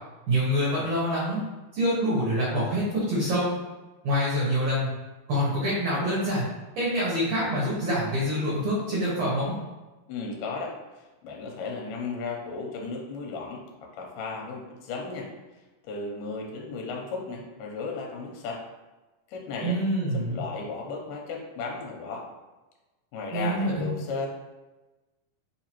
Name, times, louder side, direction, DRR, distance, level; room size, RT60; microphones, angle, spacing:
voice 1, 0.3-1.4 1.7-3.5 4.0-4.9 5.3-6.5 6.8-9.5 19.6-20.4 23.3-23.9, equal, 65° right, -8 dB, 2.0 m, -26 dB
voice 2, 10.1-15.3 15.9-18.6 19.3-19.8 20.3-22.3 23.1-24.3, left 4 dB, 85° left, 0 dB, 2.2 m, -35 dB
4.8 x 2.8 x 2.9 m, 1.1 s
omnidirectional pair, 3.8 m